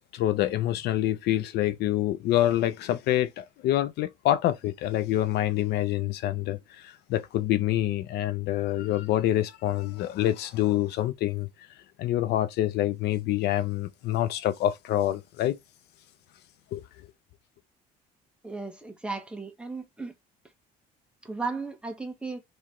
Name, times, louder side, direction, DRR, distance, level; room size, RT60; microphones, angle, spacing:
voice 1, 0.1-11.5 12.0-15.6 16.7-16.8, left 13 dB, 80° left, 0.6 m, -26 dB
voice 2, 18.4-20.1 21.2-22.4, right 4 dB, 5° right, 1.0 m, -35 dB
3.2 x 3.0 x 3.7 m
cardioid pair, 110°, 17 cm